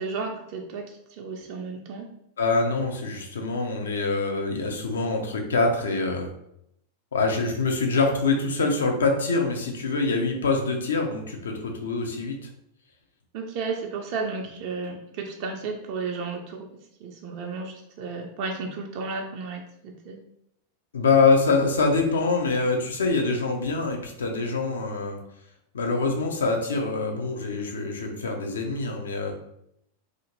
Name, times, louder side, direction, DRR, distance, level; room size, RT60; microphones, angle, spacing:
voice 1, 0.0-2.1 13.3-16.7 17.0-20.2, right 4 dB, 45° right, 1 dB, 0.4 m, -33 dB
voice 2, 2.4-6.3 7.1-12.4 20.9-25.2 25.7-29.3, left 3 dB, 65° left, 3 dB, 0.5 m, -25 dB
2.4 x 2.4 x 2.9 m, 0.76 s
figure-of-eight pair, 90°, 0 cm